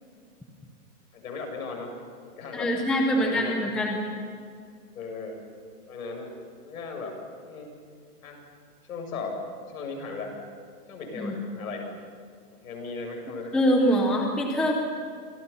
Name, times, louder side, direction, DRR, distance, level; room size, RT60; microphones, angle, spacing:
voice 1, 1.1-1.9 2.3-2.7 3.1-3.8 4.9-5.4 5.9-6.3 6.6-7.2 7.4-7.7 8.2-8.4 8.9-9.3 9.7-10.3 10.9-11.9 12.6-13.5, left 4 dB, 60° left, 3 dB, 7.6 m, -37 dB
voice 2, 2.5-4.0 11.1-11.3 13.5-14.7, equal, ahead, 0 dB, 0.8 m, -24 dB
29.5 x 26.5 x 5.7 m, 2.1 s
hypercardioid pair, 165°, 47 cm